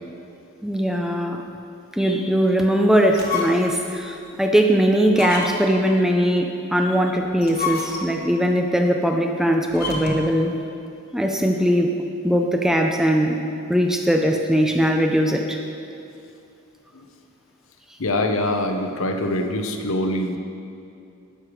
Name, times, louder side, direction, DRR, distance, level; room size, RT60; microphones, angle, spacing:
voice 1, 0.6-1.4 1.9-10.5 11.1-11.9 12.2-13.4 13.7-15.6, equal, ahead, 3 dB, 0.5 m, -20 dB
sound 1, 3.1-3.8 4.2-4.3 5.1-5.8 7.3-8.3 9.7-10.4, left 4 dB, 45° left, 1.3 m, -29 dB
voice 2, 18.0-20.4, left 1 dB, 70° left, 5 dB, 0.9 m, -24 dB
12.0 x 6.7 x 4.9 m, 2.6 s
head